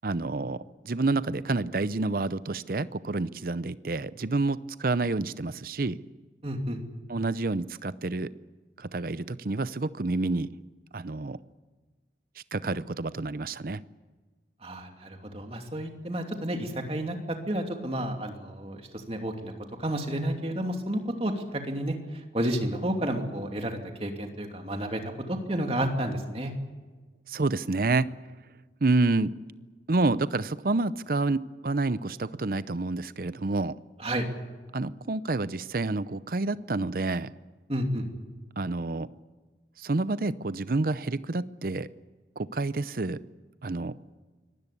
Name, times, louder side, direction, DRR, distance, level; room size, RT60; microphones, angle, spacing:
voice 1, 0.0-6.0 7.1-8.3 8.8-10.5 10.9-11.4 12.5-13.8 27.3-28.1 28.8-29.3 29.9-33.7 34.7-37.3 38.6-39.1 39.8-41.9 42.4-43.2 43.6-43.9, right 3 dB, 55° right, 16 dB, 0.7 m, -28 dB
voice 2, 6.4-6.8 14.6-18.8 19.1-19.5 19.8-25.0 25.3-26.5 34.0-34.3 37.7-38.1, right 1 dB, 35° right, 4 dB, 2.7 m, -31 dB
24.5 x 19.5 x 8.4 m, 1.3 s
head